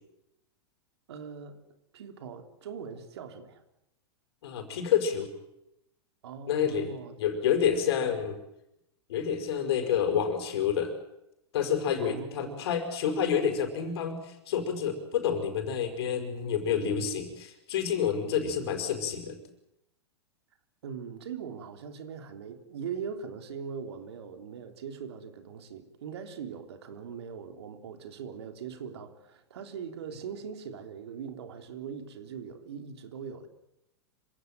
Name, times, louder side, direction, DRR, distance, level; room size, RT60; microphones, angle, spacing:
voice 1, 1.1-1.6 1.9-3.6 6.2-7.2 8.1-8.2 12.0-12.7 20.8-33.5, right 6 dB, 75° right, 6 dB, 3.4 m, -41 dB
voice 2, 4.4-5.3 6.5-6.9 7.2-8.4 9.1-10.9 11.5-19.4, left 8 dB, 65° left, 7 dB, 5.4 m, -28 dB
26.5 x 17.0 x 9.3 m, 0.86 s
hypercardioid pair, 110°, 14 cm